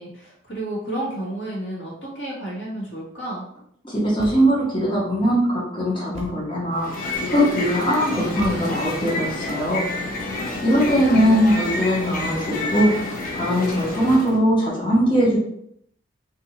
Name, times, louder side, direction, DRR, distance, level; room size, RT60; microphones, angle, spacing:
voice 1, 0.0-3.5 11.0-11.6 12.0-12.4, right 1 dB, 80° left, -5 dB, 1.5 m, -32 dB
voice 2, 3.8-6.9 7.3-9.9 10.6-15.4, equal, 30° left, -5 dB, 0.9 m, -20 dB
Thump thud, 4.2-4.7 6.1-6.6 8.4-9.1, right 1 dB, 35° right, 0.8 m, -38 dB
sound 1, 6.7-14.4, left 2 dB, 50° left, 0.6 m, -29 dB
2.7 x 2.6 x 4.1 m, 0.72 s
head